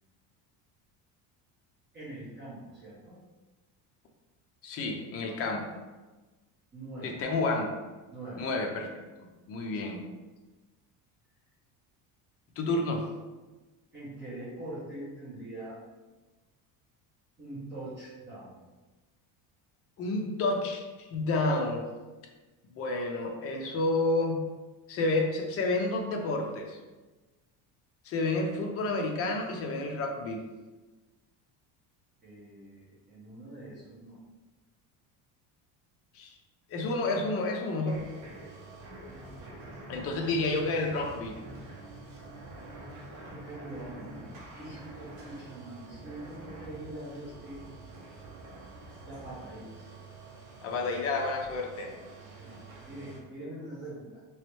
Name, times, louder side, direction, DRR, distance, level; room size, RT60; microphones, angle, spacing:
voice 1, 1.9-3.2 6.7-7.2 8.1-8.5 9.8-9.9 12.7-12.8 13.9-15.8 17.4-18.6 32.2-34.2 43.0-47.7 49.0-49.8 52.3-54.2, right 1 dB, 25° right, -10 dB, 1.2 m, -43 dB
voice 2, 4.6-5.8 7.0-7.7 8.4-8.9 9.5-10.0 12.6-13.0 20.0-21.9 22.8-24.4 24.9-26.8 28.0-30.4 36.1-36.3 36.7-38.0 39.9-41.4 50.6-51.9, left 2 dB, 35° left, 2 dB, 0.5 m, -30 dB
sound 1, 37.9-53.2, right 2 dB, 50° right, 0.9 m, -47 dB
3.1 x 3.0 x 3.0 m, 1.2 s
cardioid pair, 155°, 41 cm